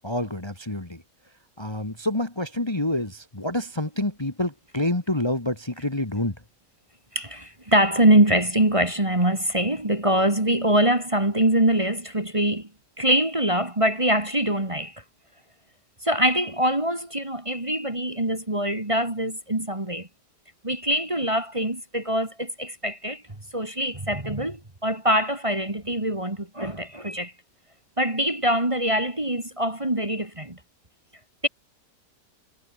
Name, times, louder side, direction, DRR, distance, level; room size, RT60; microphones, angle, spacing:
voice 1, 0.0-1.0 1.6-6.4, left 1 dB, 15° left, 2.0 m, -27 dB
voice 2, 7.1-12.7 13.0-15.0 16.0-20.1 20.6-23.2 23.5-27.3 28.0-30.6 31.4-31.5, right 1 dB, 15° right, 2.4 m, -23 dB
omnidirectional pair, 1.9 m